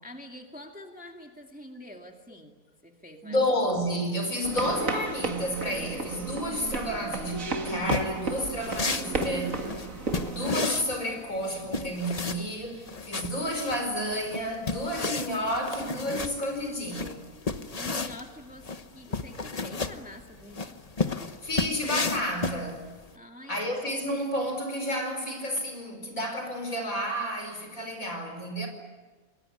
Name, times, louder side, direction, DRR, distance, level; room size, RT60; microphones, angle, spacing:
voice 1, 0.0-3.4 17.7-18.7 18.9-20.8 21.1-21.3 23.1-23.6, left 1 dB, 5° right, 2.2 m, -46 dB
voice 2, 3.2-9.8 10.1-17.3 21.4-23.0 23.5-28.7, equal, 60° left, 5.4 m, -31 dB
sound 1, 4.4-10.4, right 3 dB, 60° right, 2.4 m, -33 dB
sound 2, 7.8-23.1, left 4 dB, 30° left, 1.0 m, -33 dB
27.0 x 21.0 x 9.9 m
omnidirectional pair, 1.6 m